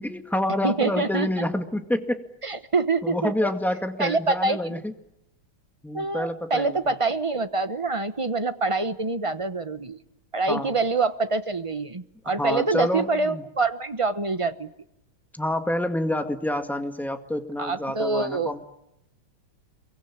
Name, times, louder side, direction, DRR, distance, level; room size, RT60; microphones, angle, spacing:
voice 1, 0.0-2.3 3.0-4.9 5.8-6.9 10.5-10.8 12.4-13.4 15.4-18.6, left 1 dB, ahead, 6 dB, 1.9 m, -28 dB
voice 2, 0.6-1.4 2.4-3.3 4.0-4.7 5.9-10.0 10.3-14.7 17.6-18.5, right 3 dB, 25° right, 11 dB, 0.7 m, -25 dB
27.5 x 23.5 x 8.8 m, 0.83 s
omnidirectional pair, 2.2 m